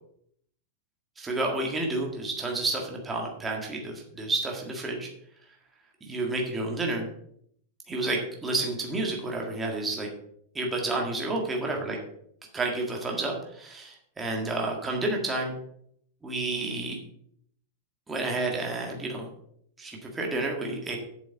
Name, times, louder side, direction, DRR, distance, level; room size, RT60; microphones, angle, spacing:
voice 1, 1.2-5.1 6.0-7.1 7.9-10.1 10.6-12.0 12.5-15.5 16.2-17.0 18.1-19.3 19.8-21.0, right 2 dB, 10° right, 0 dB, 1.7 m, -30 dB
8.0 x 6.9 x 6.9 m, 0.68 s
supercardioid pair, 170°, 0 cm